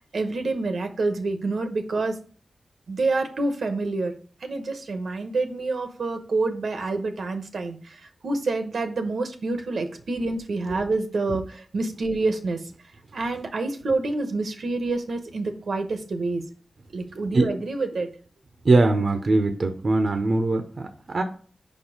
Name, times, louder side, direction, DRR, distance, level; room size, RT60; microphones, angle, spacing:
voice 1, 0.0-2.2 2.9-4.1 4.4-12.6 13.1-16.4 16.9-18.1, right 3 dB, 75° right, 6 dB, 1.0 m, -27 dB
voice 2, 18.6-21.2, right 2 dB, 55° right, 6 dB, 0.8 m, -21 dB
5.2 x 4.5 x 5.0 m, 0.42 s
wide cardioid pair, 85°, 0 cm